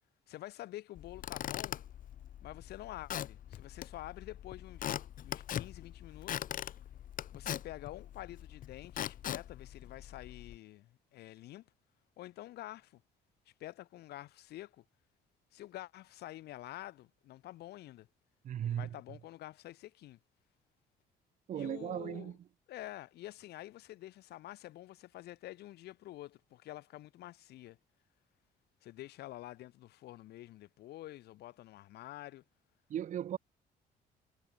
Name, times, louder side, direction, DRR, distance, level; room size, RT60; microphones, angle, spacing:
voice 1, 0.3-1.8 2.4-4.9 5.2-6.5 7.3-11.7 12.2-13.0 13.6-14.8 15.5-18.1 18.6-20.2 21.5-22.3 22.7-27.8 28.8-32.4, left 15 dB, 75° left, 2.0 m, -48 dB
Squeak / Wood, 0.9-10.6, left 11 dB, 55° left, 1.3 m, -42 dB
voice 2, 18.4-18.9 21.5-22.4 32.9-33.4, right 10 dB, 50° right, 0.9 m, -37 dB
cardioid pair, 110°, 17 cm